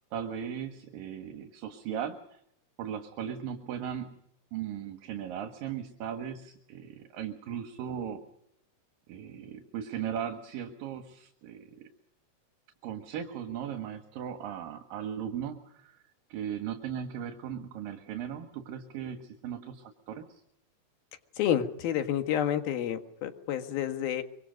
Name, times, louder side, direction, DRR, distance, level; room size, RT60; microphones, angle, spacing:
voice 1, 0.1-2.4 2.8-4.2 4.5-8.2 9.1-11.9 12.8-16.0 16.3-20.4, right 9 dB, 75° right, 6 dB, 3.2 m, -37 dB
voice 2, 21.4-24.2, left 10 dB, 90° left, 7 dB, 3.5 m, -29 dB
25.0 x 24.5 x 5.2 m, 0.75 s
omnidirectional pair, 4.1 m